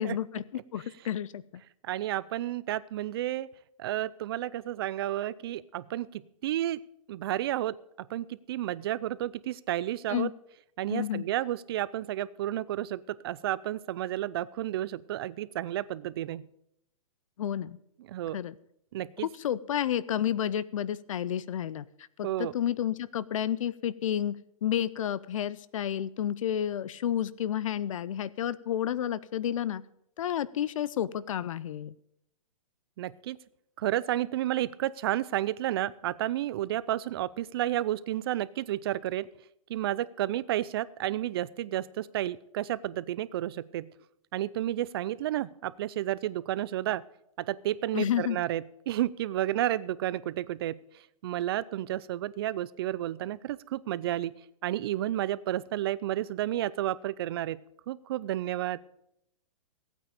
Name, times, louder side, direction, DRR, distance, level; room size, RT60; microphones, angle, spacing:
voice 1, 0.0-1.4 10.1-10.3 10.9-11.3 17.4-17.8 18.3-18.5 19.2-21.9 22.2-24.4 24.6-29.8 30.2-31.9 47.9-48.4, left 10 dB, 60° left, 19 dB, 0.6 m, -31 dB
voice 2, 1.8-3.5 3.8-6.8 7.1-7.8 8.1-10.3 10.8-16.5 18.1-18.4 18.9-19.3 22.2-22.5 33.0-33.4 33.8-39.3 39.7-43.9 44.3-47.0 47.4-50.8 51.2-54.3 54.6-57.6 57.9-58.8, right 13 dB, 40° right, 18 dB, 0.5 m, -31 dB
15.5 x 9.0 x 5.1 m, 0.77 s
hypercardioid pair, 155°, 19 cm